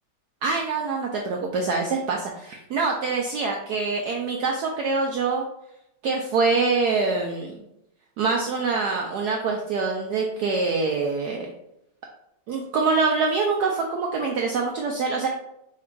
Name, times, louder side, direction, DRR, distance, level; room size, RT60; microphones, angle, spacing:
voice 1, 0.4-5.4 6.0-7.6 8.2-11.5 12.5-15.3, right 4 dB, 80° right, 1 dB, 0.9 m, -25 dB
4.3 x 2.4 x 4.5 m, 0.82 s
omnidirectional pair, 2.2 m